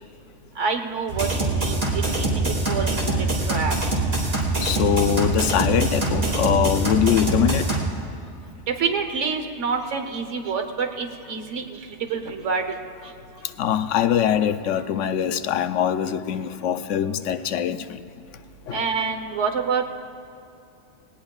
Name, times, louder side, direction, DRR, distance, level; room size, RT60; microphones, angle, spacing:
voice 1, 0.6-2.3 2.7-3.0 3.5-3.7 8.8-11.6 12.1-12.6 18.7-19.9, right 5 dB, 75° right, 5 dB, 1.4 m, -27 dB
sound 1, 1.1-7.8, right 2 dB, 55° right, 2.4 m, -24 dB
voice 2, 4.6-8.0 13.4-18.0 18.7-18.9, left 9 dB, 85° left, 11 dB, 0.9 m, -23 dB
19.0 x 18.5 x 2.4 m, 2.6 s
omnidirectional pair, 1.2 m